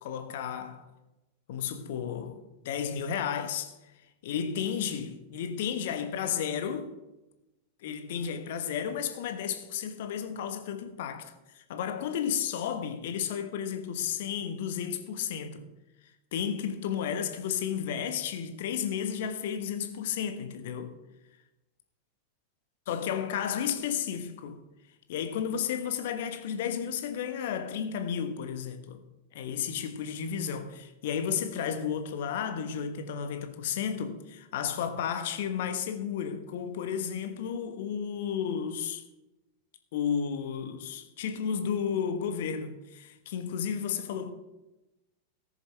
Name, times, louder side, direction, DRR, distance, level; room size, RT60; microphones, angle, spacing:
voice 1, 0.0-0.9 1.5-3.8 4.2-6.9 7.8-15.7 16.3-21.0 22.9-24.6 25.1-29.0 29.3-39.0 39.9-44.3, left 8 dB, 55° left, 1.2 m, -33 dB
18.5 x 7.0 x 3.4 m
figure-of-eight pair, 90°, 0 cm